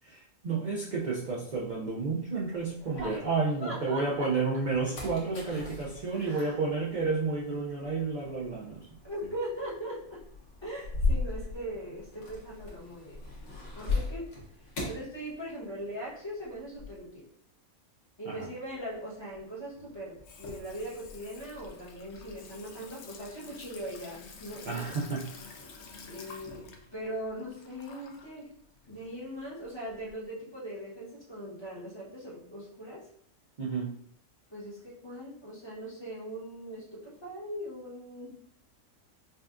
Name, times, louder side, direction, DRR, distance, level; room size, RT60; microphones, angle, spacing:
voice 1, 0.0-8.9 18.3-18.5 24.7-25.3 33.6-34.0, right 4 dB, 55° right, -4 dB, 0.5 m, -31 dB
sound 1, 0.9-3.7 4.2-15.9 16.2-17.0, left 3 dB, 85° left, 1.4 m, -38 dB
voice 2, 2.8-3.3 3.6-4.3 6.1-6.5 9.0-10.2 10.6-13.2 13.7-14.3 14.9-17.2 18.2-24.9 26.1-28.5 28.9-33.0 34.5-38.4, equal, 20° left, -8 dB, 1.1 m, -40 dB
Water tap faucet / Sink (filling or washing), 18.4-30.1, left 4 dB, 65° left, 0.8 m, -50 dB
5.2 x 2.4 x 2.4 m, 0.66 s
omnidirectional pair, 1.4 m